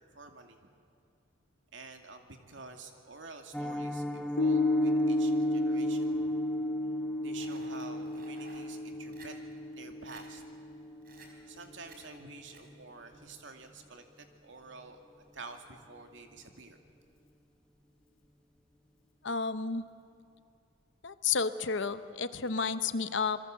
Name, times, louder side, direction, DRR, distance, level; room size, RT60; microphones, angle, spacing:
voice 1, 0.1-0.7 1.7-6.3 7.2-9.3 9.7-10.5 11.5-15.0 15.3-16.8, right 3 dB, 65° right, 5 dB, 2.4 m, -49 dB
Piano, 3.5-14.4 14.7-14.9 15.2-15.4 15.7-16.0 16.3-16.4, equal, 5° left, 1.1 m, -42 dB
Piano 2, 4.4-11.1, left 1 dB, 85° left, 2.5 m, -32 dB
sound 1, 7.4-8.7 9.1-9.3 9.7-9.8 10.1-10.2 11.0-11.3 11.9-12.0 12.5-12.6, right 4 dB, 45° right, 4.3 m, -54 dB
voice 2, 19.2-19.8 21.0-23.4, left 5 dB, 65° left, 12 dB, 0.9 m, -31 dB
26.5 x 22.5 x 7.6 m, 2.4 s
head